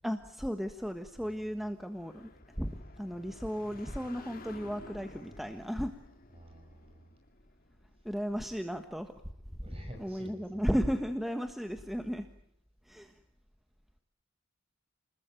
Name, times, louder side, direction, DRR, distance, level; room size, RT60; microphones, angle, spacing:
voice 1, 0.0-6.0 8.0-9.1 9.6-9.7 10.0-12.3 12.8-13.2, equal, ahead, 6 dB, 1.4 m, -35 dB
sound 1, 1.8-8.4, left 2 dB, 45° left, 2.3 m, -53 dB
voice 2, 6.3-7.1 9.6-10.7, equal, 25° right, 4 dB, 5.7 m, -51 dB
30.0 x 21.0 x 9.1 m, 0.74 s
head